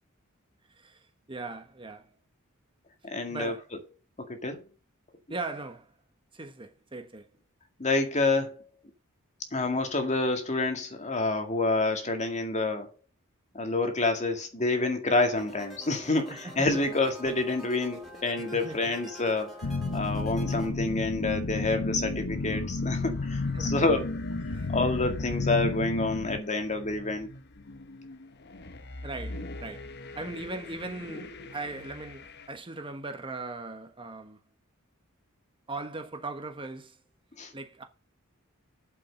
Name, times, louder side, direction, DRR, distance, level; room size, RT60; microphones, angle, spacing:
voice 1, 0.7-2.1 3.3-3.7 5.3-5.9 6.3-7.3 16.3-16.9 18.5-18.8 23.5-23.8 24.5-24.7 29.0-34.4 35.7-37.0 37.5-37.8, right 3 dB, 25° right, 1.2 m, -39 dB
voice 2, 3.0-3.5 4.2-4.7 7.8-8.6 9.5-12.9 13.5-24.1 24.7-27.3 37.4-37.5, left 2 dB, 35° left, 2.1 m, -28 dB
sound 1, 15.4-20.7, equal, ahead, 3.0 m, -46 dB
sound 2, 19.6-26.4, left 3 dB, 90° left, 0.9 m, -31 dB
sound 3, 22.3-32.5, left 2 dB, 50° left, 1.0 m, -45 dB
8.4 x 7.5 x 5.2 m
head